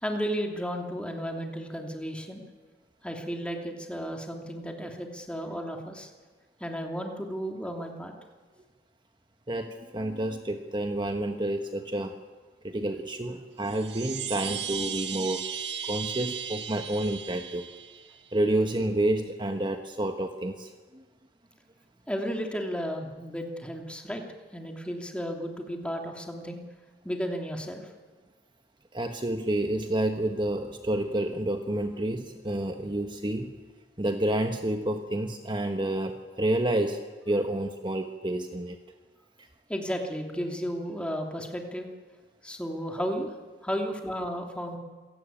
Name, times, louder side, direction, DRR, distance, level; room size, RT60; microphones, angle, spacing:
voice 1, 0.0-2.4 3.0-6.1 6.6-8.1 22.1-24.2 24.5-26.6 27.0-27.9 39.7-41.9 42.4-43.3 43.6-44.8, equal, 5° left, 2 dB, 2.9 m, -33 dB
voice 2, 9.5-12.2 12.6-15.5 15.8-17.7 18.3-21.0 28.9-33.5 34.0-38.8, right 1 dB, 25° right, 5 dB, 1.3 m, -29 dB
Chime, 13.6-18.3, right 8 dB, 75° right, 1.8 m, -36 dB
27.5 x 17.5 x 8.8 m, 1.4 s
head